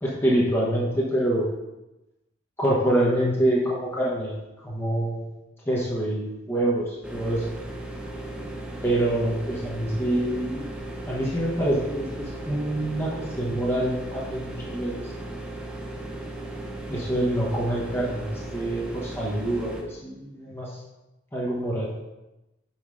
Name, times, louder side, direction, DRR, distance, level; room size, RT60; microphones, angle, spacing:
voice 1, 0.0-1.5 2.6-5.2 5.7-7.4 8.8-10.6 11.1-15.1 16.9-20.7 21.3-21.9, right 1 dB, 10° left, -5 dB, 1.2 m, -26 dB
sound 1, 7.0-19.8, right 1 dB, 5° right, 0.7 m, -36 dB
5.9 x 4.8 x 4.9 m, 0.99 s
head